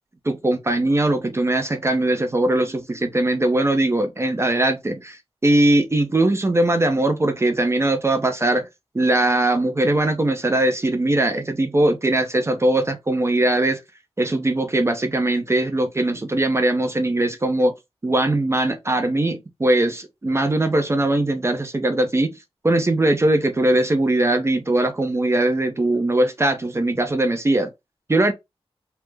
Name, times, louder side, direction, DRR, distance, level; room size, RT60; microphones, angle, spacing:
voice 1, 0.3-8.7 8.9-13.8 14.2-17.7 18.0-22.4 22.6-27.7 28.1-28.3, right 1 dB, 25° right, 0.5 m, -20 dB
3.3 x 2.0 x 3.2 m
wide cardioid pair, 115°, 11 cm